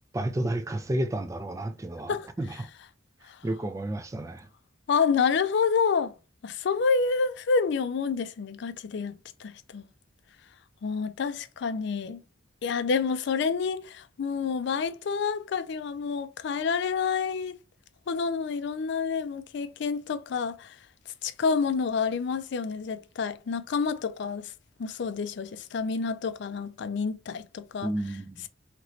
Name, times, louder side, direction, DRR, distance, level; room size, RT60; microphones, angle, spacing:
voice 1, 0.1-2.7 3.4-4.5 27.8-28.5, right 1 dB, 15° right, 0.3 m, -31 dB
voice 2, 4.9-6.1 6.4-9.1 9.4-9.9 10.8-12.2 12.6-17.6 18.1-20.8 21.2-24.5 24.8-27.9, left 5 dB, 60° left, 0.4 m, -28 dB
3.0 x 2.9 x 2.6 m
head